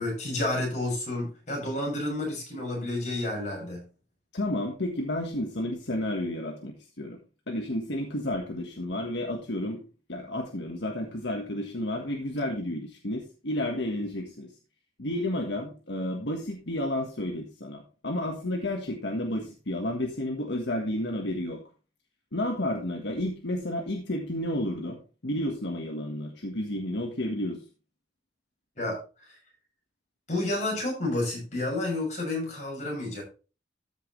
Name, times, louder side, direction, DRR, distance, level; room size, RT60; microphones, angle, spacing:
voice 1, 0.0-3.9 28.8-29.0 30.3-33.2, left 2 dB, 40° left, -1 dB, 6.7 m, -30 dB
voice 2, 4.3-7.2 7.5-9.8 10.1-14.5 15.0-21.6 22.3-25.0 25.2-27.6, left 1 dB, 70° left, 2 dB, 1.5 m, -31 dB
13.5 x 6.9 x 3.2 m, 0.34 s
head